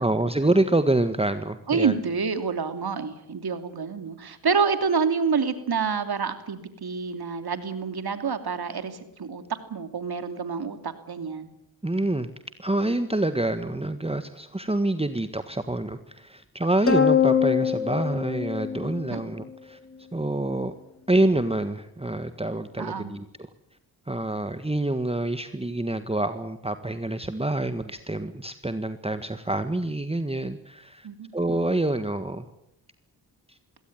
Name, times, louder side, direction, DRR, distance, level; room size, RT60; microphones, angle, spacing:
voice 1, 0.0-2.0 11.8-12.3 12.6-19.8 20.1-20.7 21.1-23.2 24.1-31.1 31.3-32.5 33.5-33.6, right 2 dB, 15° right, 10 dB, 1.6 m, -26 dB
voice 2, 1.7-9.4 9.7-11.5 19.1-19.2 22.8-23.1 31.0-31.3, right 5 dB, 60° right, 9 dB, 2.9 m, -27 dB
sound 1, 16.9-19.5, left 7 dB, 30° left, 3.0 m, -23 dB
22.0 x 17.0 x 9.3 m, 0.81 s
supercardioid pair, 40°, 44 cm